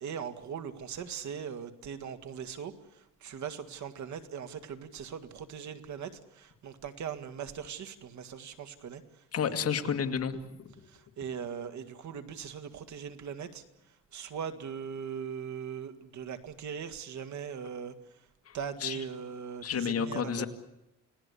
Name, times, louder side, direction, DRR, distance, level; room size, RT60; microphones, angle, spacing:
voice 1, 0.0-2.7 3.2-6.1 6.4-9.0 11.2-13.6 14.1-17.9 18.5-20.5, right 7 dB, 60° right, 9 dB, 2.1 m, -40 dB
voice 2, 9.3-10.7 18.5-19.0 19.6-20.5, left 7 dB, 45° left, 7 dB, 2.1 m, -31 dB
29.5 x 18.5 x 8.4 m, 0.91 s
cardioid pair, 145°, 32 cm